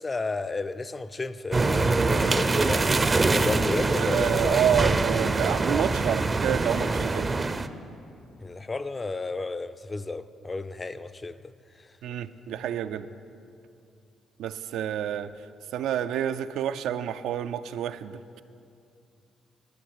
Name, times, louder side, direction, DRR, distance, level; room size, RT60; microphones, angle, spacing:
voice 1, 0.0-2.9 3.3-4.9 8.4-11.4, left 3 dB, 25° left, 0.4 m, -32 dB
sound 1, 1.5-7.7, right 3 dB, 25° right, 0.5 m, -24 dB
voice 2, 4.0-7.3 12.0-13.1 14.4-15.3 15.7-18.4, right 9 dB, 85° right, 0.4 m, -28 dB
12.0 x 6.5 x 8.8 m
cardioid pair, 90°, 0 cm